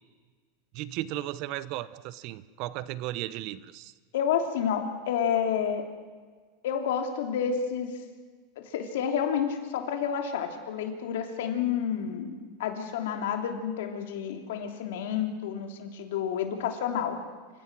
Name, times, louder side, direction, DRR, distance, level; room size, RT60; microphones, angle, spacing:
voice 1, 0.7-3.9, right 15 dB, 50° right, 17 dB, 0.9 m, -35 dB
voice 2, 4.1-5.8 6.6-7.9 8.6-17.2, left 8 dB, 80° left, 4 dB, 3.2 m, -30 dB
28.5 x 16.0 x 6.2 m, 1.5 s
supercardioid pair, 135°, 0 cm